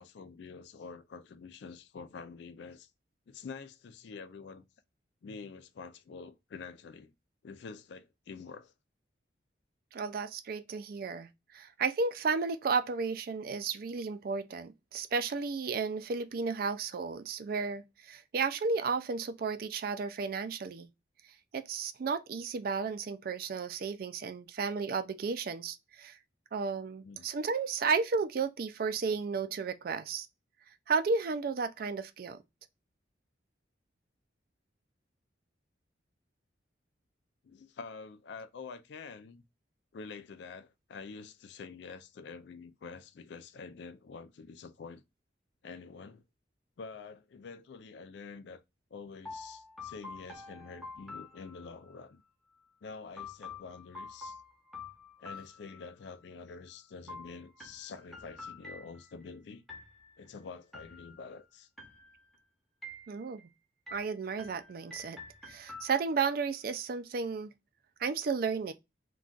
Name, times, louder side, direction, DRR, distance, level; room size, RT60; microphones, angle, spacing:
voice 1, 0.0-2.9 3.3-4.6 5.2-7.1 7.4-8.7 27.0-27.3 37.4-39.4 39.9-45.0 45.6-46.2 46.8-48.6 48.9-52.2 52.8-54.4 55.2-59.6 60.2-61.7, left 5 dB, 65° left, 0.3 m, -47 dB
voice 2, 9.9-20.9 21.5-26.2 26.5-30.3 30.9-32.4 63.1-63.4 63.9-65.2 65.5-67.5 68.0-68.7, right 5 dB, 50° right, 0.3 m, -33 dB
sound 1, 49.2-52.0 53.2-56.2 57.1-59.3 59.7-60.3 60.7-61.4 61.8-62.4 62.8-63.5 63.9-66.3, left 3 dB, ahead, 0.6 m, -48 dB
2.3 x 2.3 x 3.7 m
head